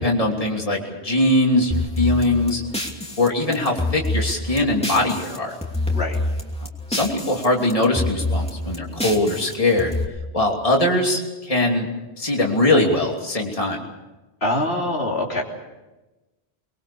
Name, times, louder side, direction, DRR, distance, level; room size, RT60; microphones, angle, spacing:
voice 1, 0.0-2.6 3.2-5.5 6.9-9.9 10.3-11.9 12.2-13.8, left 2 dB, 30° left, 0 dB, 3.1 m, -21 dB
sound 1, 1.7-5.4 5.6-7.5 7.7-10.0, left 2 dB, 5° left, 2.8 m, -26 dB
voice 2, 14.4-15.4, left 1 dB, 70° left, -1 dB, 3.6 m, -24 dB
23.5 x 22.5 x 7.1 m, 1.1 s
omnidirectional pair, 1.1 m